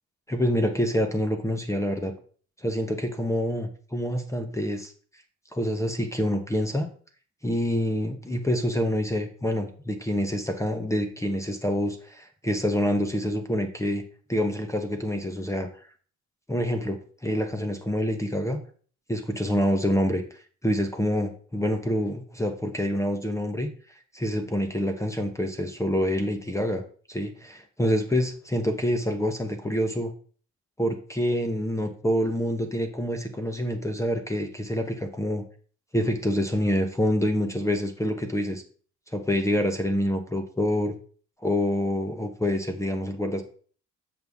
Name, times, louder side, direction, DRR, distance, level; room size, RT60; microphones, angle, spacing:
voice 1, 0.3-2.1 2.6-4.9 5.5-6.9 7.4-14.0 14.3-15.7 16.5-18.6 19.1-23.7 24.1-30.1 30.8-35.4 35.9-38.6 39.1-40.9 41.4-43.4, equal, 10° left, 6 dB, 0.9 m, -27 dB
7.7 x 5.5 x 3.5 m, 0.43 s
cardioid pair, 90°, 30 cm